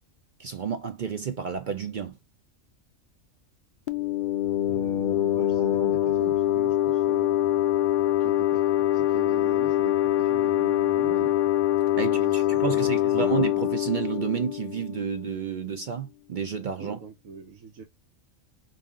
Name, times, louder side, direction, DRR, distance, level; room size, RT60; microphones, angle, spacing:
voice 1, 0.4-2.2 12.0-17.0, right 7 dB, 55° right, 0.5 m, -30 dB
sound 1, 3.9-15.3, left 13 dB, 75° left, 0.4 m, -24 dB
voice 2, 4.7-7.5 8.2-11.4 11.9-13.3 16.8-17.8, right 5 dB, 90° right, 1.3 m, -42 dB
5.3 x 2.6 x 3.6 m
omnidirectional pair, 1.4 m